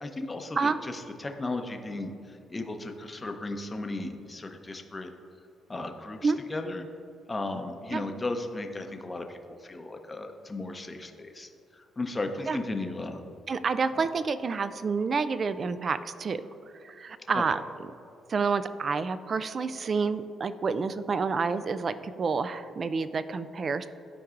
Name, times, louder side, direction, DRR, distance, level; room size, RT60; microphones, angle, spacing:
voice 1, 0.0-5.1 5.7-6.9 7.3-13.2 13.9-14.0 17.3-17.4, left 2 dB, 20° left, 5 dB, 0.7 m, -35 dB
voice 2, 13.5-16.4 16.8-17.6 18.3-23.9, right 4 dB, 45° right, 13 dB, 0.3 m, -29 dB
12.5 x 4.6 x 2.5 m, 2.7 s
cardioid pair, 90°, 0 cm